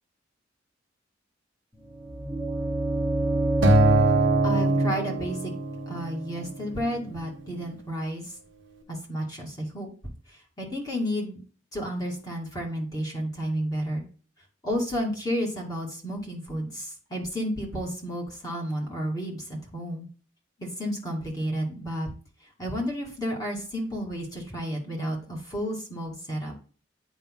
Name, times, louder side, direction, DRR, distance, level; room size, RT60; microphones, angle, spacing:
sound 1, 1.8-7.6, right 1 dB, 5° right, 1.3 m, -28 dB
Acoustic guitar, 3.6-6.0, right 2 dB, 70° right, 1.1 m, -23 dB
voice 1, 4.4-5.5 5.9-8.2 8.9-9.9 10.6-11.4 11.7-14.0 14.6-19.4 19.7-20.1 20.6-22.1 22.6-26.5, equal, 20° left, -1 dB, 2.3 m, -31 dB
8.8 x 5.0 x 2.2 m, 0.39 s
head